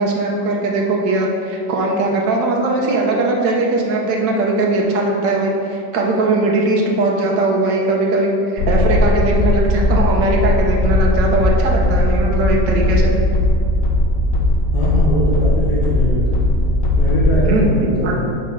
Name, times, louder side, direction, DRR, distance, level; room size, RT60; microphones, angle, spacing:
voice 1, 0.0-13.1 17.5-17.7 18.0-18.1, right 2 dB, 75° right, -1 dB, 1.6 m, -19 dB
sound 1, 8.6-17.3, left 1 dB, 65° left, 0.9 m, -17 dB
voice 2, 14.7-16.4 16.9-18.2, left 1 dB, 40° left, -9 dB, 1.6 m, -21 dB
7.7 x 4.3 x 5.3 m, 2.4 s
omnidirectional pair, 2.0 m